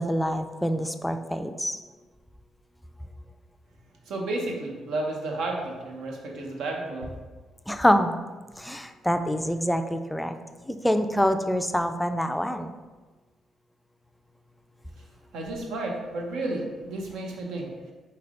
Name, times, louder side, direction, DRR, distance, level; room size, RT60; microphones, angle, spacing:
voice 1, 0.0-1.8 7.7-8.2 8.6-10.4 10.7-12.7, equal, 5° left, 7 dB, 0.3 m, -25 dB
voice 2, 4.1-7.1 15.3-17.7, right 2 dB, 85° right, 0 dB, 0.9 m, -32 dB
4.2 x 3.3 x 3.7 m, 1.3 s
cardioid pair, 90°, 0 cm